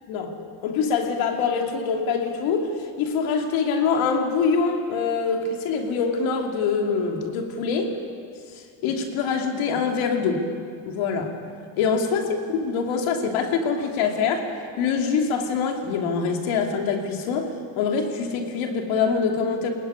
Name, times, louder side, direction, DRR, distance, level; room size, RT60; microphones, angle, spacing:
voice 1, 0.1-8.0 8.5-10.5 10.9-11.4 11.8-14.5 14.8-19.7, left 5 dB, 90° left, 3 dB, 2.8 m, -24 dB
22.0 x 17.5 x 9.7 m, 2.2 s
supercardioid pair, 75°, 46 cm